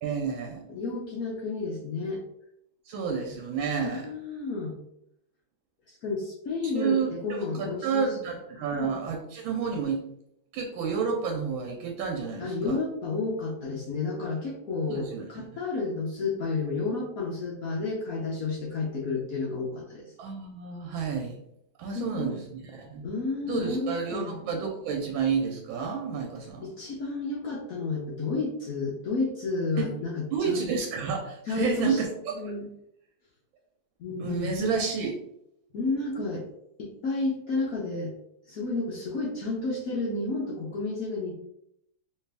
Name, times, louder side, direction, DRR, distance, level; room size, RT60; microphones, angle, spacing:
voice 1, 0.0-0.6 2.9-4.1 6.8-10.0 10.5-12.8 14.9-15.5 20.2-21.4 21.8-23.0 23.4-26.7 29.8-29.9 30.3-32.5 34.2-35.2, right 5 dB, 85° right, 2 dB, 1.4 m, -30 dB
voice 2, 0.7-2.2 3.8-4.8 6.0-8.1 8.7-8.9 12.4-20.1 21.9-22.3 23.0-24.5 26.6-30.7 31.5-32.0 32.3-32.7 34.0-34.5 35.7-36.5 36.8-38.1 38.5-41.4, left 3 dB, 65° left, -4 dB, 0.9 m, -31 dB
3.3 x 2.9 x 3.4 m, 0.76 s
omnidirectional pair, 2.2 m